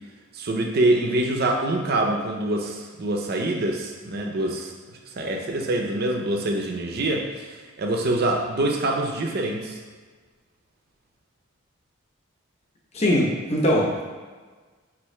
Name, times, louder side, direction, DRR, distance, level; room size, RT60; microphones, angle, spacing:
voice 1, 0.3-4.7 5.1-9.8, right 1 dB, 50° right, 2 dB, 0.5 m, -25 dB
voice 2, 12.9-14.1, equal, 30° left, -3 dB, 0.7 m, -21 dB
5.5 x 2.5 x 3.1 m, 1.4 s
head